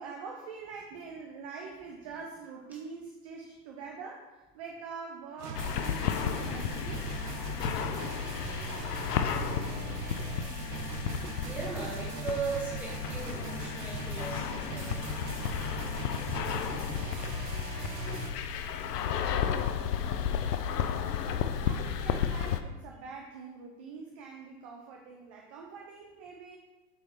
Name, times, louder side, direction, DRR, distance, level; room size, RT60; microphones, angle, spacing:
voice 1, 0.0-7.2 21.6-26.6, right 5 dB, 25° right, 0 dB, 0.4 m, -44 dB
sound 1, 5.4-18.3, right 3 dB, 90° right, 1.2 m, -39 dB
sound 2, 5.5-22.6, left 8 dB, 75° left, 0.7 m, -33 dB
voice 2, 7.1-10.5 11.4-15.1 18.5-18.7, right 4 dB, 5° right, -5 dB, 1.8 m, -41 dB
7.7 x 3.4 x 4.2 m, 1.1 s
hypercardioid pair, 125°, 48 cm